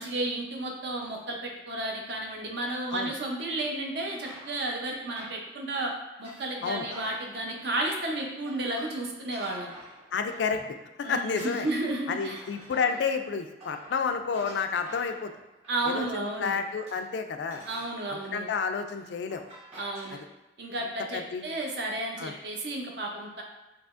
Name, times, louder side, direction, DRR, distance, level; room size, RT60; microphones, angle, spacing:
voice 1, 0.0-5.9 6.2-9.7 11.0-12.4 15.7-16.6 17.7-18.5 19.8-20.2 20.6-23.4, right 2 dB, 60° right, 1 dB, 0.6 m, -32 dB
sound 1, 4.2-10.8 11.0-20.2, right 1 dB, 35° right, 1.4 m, -49 dB
voice 2, 10.1-10.6 11.0-11.7 12.1-15.3 15.8-17.6 18.1-19.4 21.1-21.5 22.2-22.3, left 5 dB, 70° left, 7 dB, 0.3 m, -30 dB
4.8 x 2.8 x 2.4 m, 1.0 s
head